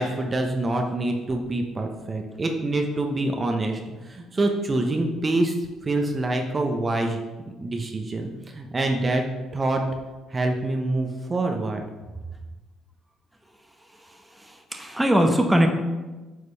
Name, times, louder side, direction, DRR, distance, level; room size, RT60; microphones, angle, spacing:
voice 1, 0.0-5.5 5.8-7.2 7.6-9.2 9.5-9.8 10.3-11.8, right 2 dB, 35° right, 3 dB, 0.9 m, -26 dB
voice 2, 14.4-15.7, equal, 10° right, 4 dB, 1.0 m, -21 dB
8.4 x 5.0 x 3.4 m, 1.2 s
hypercardioid pair, 55°, 0 cm